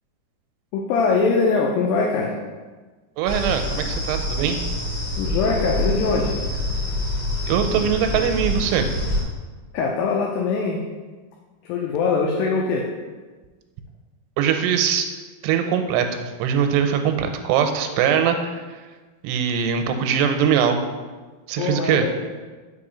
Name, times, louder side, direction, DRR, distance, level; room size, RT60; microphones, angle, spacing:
voice 1, 0.7-2.4 5.2-6.3 9.7-10.8 11.6-12.9 21.6-22.1, left 4 dB, 90° left, 0 dB, 2.0 m, -22 dB
sound 1, 3.2-9.2, left 1 dB, 40° left, 1.7 m, -26 dB
voice 2, 3.2-4.6 7.5-8.9 14.4-15.1 15.4-18.6 19.2-20.8 21.5-22.1, right 8 dB, 90° right, 6 dB, 2.7 m, -21 dB
5.4 x 4.3 x 4.9 m, 1.3 s
omnidirectional pair, 4.8 m